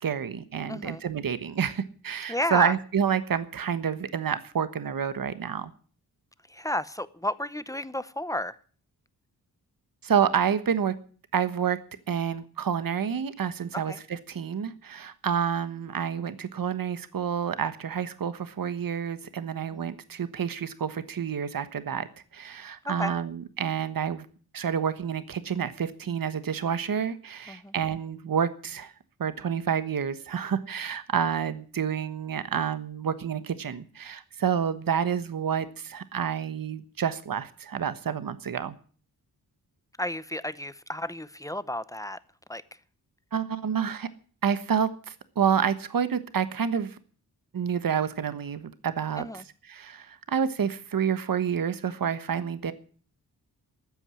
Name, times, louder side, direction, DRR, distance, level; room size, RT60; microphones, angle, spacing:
voice 1, 0.0-5.7 10.0-11.0 11.3-11.8 12.1-22.1 22.3-24.3 24.5-28.9 29.2-38.7 43.3-44.1 44.4-47.0 47.5-49.2 49.7-52.7, right 7 dB, 60° right, 13 dB, 1.3 m, -29 dB
voice 2, 0.7-1.0 2.3-2.8 6.5-8.6 13.7-14.0 19.7-19.9 22.8-23.2 27.5-27.7 40.0-42.2 42.5-42.8 49.2-49.4, left 1 dB, 10° left, 16 dB, 0.7 m, -32 dB
13.5 x 9.1 x 9.8 m, 0.43 s
wide cardioid pair, 120°, 38 cm